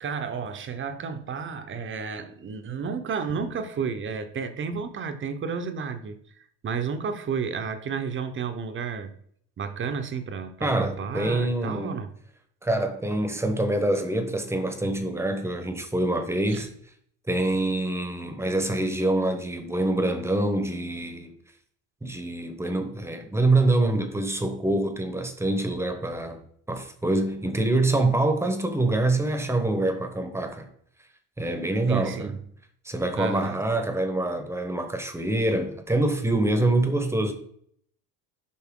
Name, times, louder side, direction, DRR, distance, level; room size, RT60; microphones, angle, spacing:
voice 1, 0.0-6.2 6.6-9.1 9.6-12.1 16.5-16.7 31.9-32.4 33.2-33.6, right 6 dB, 35° right, 0.8 m, -32 dB
voice 2, 10.6-12.0 12.6-16.7 17.3-21.3 22.0-26.4 26.7-30.7 31.4-32.3 32.8-37.3, right 2 dB, 5° right, 1.0 m, -25 dB
8.4 x 5.5 x 3.7 m
cardioid pair, 130°, 35 cm